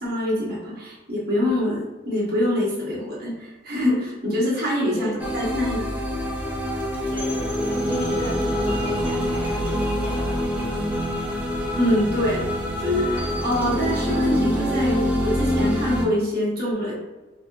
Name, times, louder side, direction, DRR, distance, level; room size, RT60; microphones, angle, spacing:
voice 1, 0.0-5.8 11.8-16.9, left 1 dB, 50° right, -7 dB, 1.1 m, -25 dB
voice 2, 4.9-5.4 7.1-10.9, equal, 55° left, -9 dB, 0.7 m, -36 dB
Mysteric Milkyway, 5.2-16.1, left 1 dB, 5° right, 0.4 m, -25 dB
3.5 x 2.5 x 2.5 m, 1.1 s
head